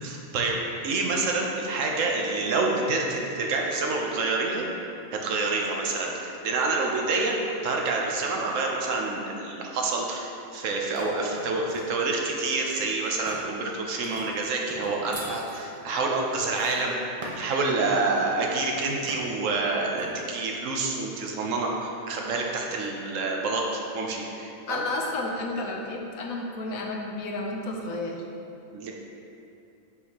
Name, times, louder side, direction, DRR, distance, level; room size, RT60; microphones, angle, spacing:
voice 1, 0.0-4.6 5.1-16.9 17.4-23.6 23.9-24.8 28.7-28.9, right 3 dB, 70° right, 0 dB, 1.0 m, -27 dB
sound 1, 11.0-11.9 12.7-13.5 14.0-17.6 18.2-18.4 19.1-19.5 20.0-20.2, right 1 dB, 35° right, 0.6 m, -42 dB
voice 2, 24.7-28.2, left 2 dB, 85° left, 1 dB, 1.1 m, -31 dB
6.2 x 5.5 x 2.9 m, 2.7 s
omnidirectional pair, 1.4 m